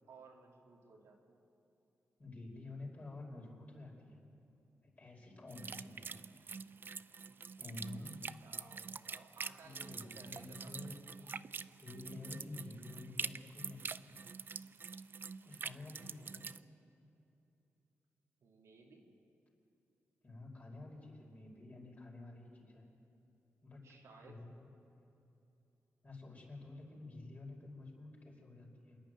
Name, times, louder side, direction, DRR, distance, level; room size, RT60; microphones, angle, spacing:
voice 1, 0.1-1.4 7.3-8.1 8.4-10.9 18.4-19.0 23.8-24.4, right 4 dB, 85° right, -1 dB, 3.1 m, -59 dB
voice 2, 2.2-4.2 4.8-6.2 7.6-8.2 9.6-11.0 11.8-14.2 15.4-16.6 20.2-22.8 23.6-24.0 24.2-24.7 26.0-29.0, left 2 dB, 35° left, -1 dB, 5.3 m, -50 dB
sound 1, 5.5-16.6, right 5 dB, 45° right, 0.5 m, -46 dB
27.0 x 10.5 x 9.2 m, 2.8 s
cardioid pair, 90°, 5 cm